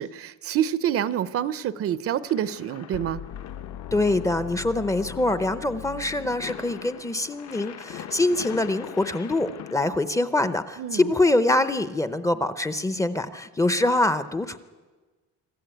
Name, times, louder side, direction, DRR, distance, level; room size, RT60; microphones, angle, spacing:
voice 1, 0.0-3.2 10.8-11.1, right 10 dB, 50° right, 17 dB, 0.6 m, -27 dB
sound 1, 2.0-9.7, left 9 dB, 55° left, 1.2 m, -42 dB
sound 2, 2.9-6.9, left 11 dB, 80° left, 0.7 m, -39 dB
voice 2, 3.9-14.6, left 2 dB, 10° left, 12 dB, 0.6 m, -24 dB
24.5 x 14.0 x 9.1 m, 1.3 s
cardioid pair, 170°, 30 cm